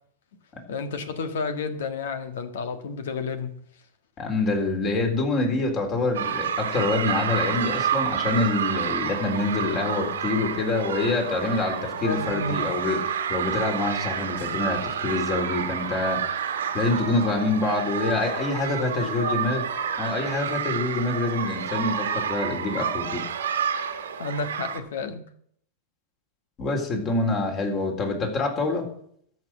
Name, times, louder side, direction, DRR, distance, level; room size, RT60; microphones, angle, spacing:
voice 1, 0.7-3.5 12.0-12.6 18.4-19.4 24.2-25.2, left 4 dB, 70° left, 9 dB, 1.6 m, -31 dB
voice 2, 4.2-19.6 20.0-23.2 26.6-28.8, left 3 dB, 35° left, 3 dB, 3.9 m, -26 dB
sound 1, 6.1-24.8, right 8 dB, 75° right, 1.6 m, -29 dB
13.5 x 5.9 x 8.1 m, 0.64 s
hypercardioid pair, 100°, 0 cm